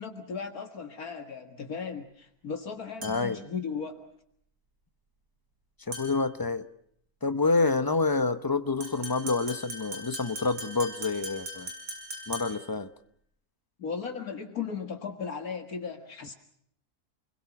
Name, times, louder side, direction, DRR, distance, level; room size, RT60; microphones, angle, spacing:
voice 1, 0.0-4.1 13.8-16.3, left 6 dB, 65° left, 5 dB, 2.1 m, -36 dB
voice 2, 3.0-3.4 5.9-6.7 7.2-11.7 12.3-12.9, left 3 dB, 20° left, 11 dB, 0.8 m, -28 dB
sound 1, 3.0-3.5 5.9-6.3 8.8-12.8, right 1 dB, 85° right, 6.0 m, -40 dB
29.0 x 21.5 x 6.0 m, 0.67 s
omnidirectional pair, 1.7 m